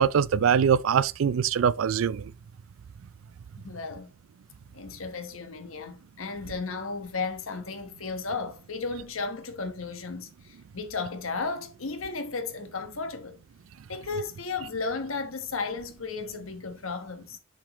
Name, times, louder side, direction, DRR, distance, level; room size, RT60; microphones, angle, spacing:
voice 1, 0.0-2.3, right 7 dB, 75° right, 0.4 m, -23 dB
voice 2, 3.6-4.1 4.7-13.4 13.9-17.4, left 4 dB, 80° left, 1.2 m, -34 dB
7.1 x 5.0 x 3.0 m
head